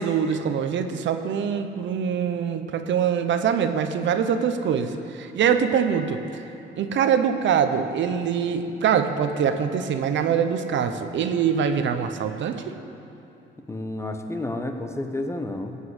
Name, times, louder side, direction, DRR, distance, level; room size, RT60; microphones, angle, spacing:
voice 1, 0.0-6.4 6.8-12.7, right 7 dB, 70° right, 8 dB, 0.8 m, -24 dB
voice 2, 13.7-15.8, left 2 dB, 15° left, 5 dB, 1.0 m, -30 dB
16.0 x 5.5 x 8.1 m, 2.9 s
cardioid pair, 90°, 20 cm